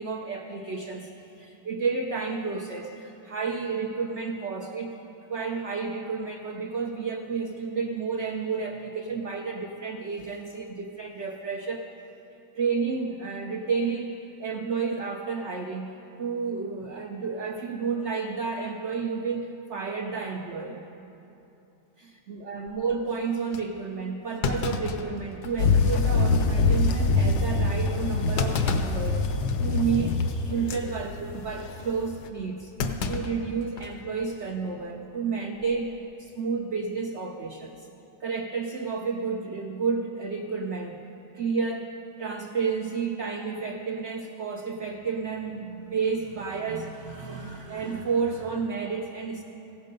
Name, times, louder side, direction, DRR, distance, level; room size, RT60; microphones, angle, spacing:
voice 1, 0.0-11.9 12.6-20.8 22.0-32.7 33.1-37.9 38.2-41.0 41.3-49.4, right 5 dB, 55° right, 2 dB, 0.8 m, -31 dB
Thump thud, 22.7-22.9 23.5-23.6 24.4-25.8 26.1-26.2 26.7-26.9 28.4-29.0 29.5-29.7 30.5-30.8 32.8-34.0 34.3-34.4 35.5-35.9, left 5 dB, 70° left, 1.3 m, -31 dB
sound 1, 25.6-32.3, left 3 dB, 85° left, 1.4 m, -24 dB
15.5 x 12.0 x 5.3 m, 2.9 s
omnidirectional pair, 1.9 m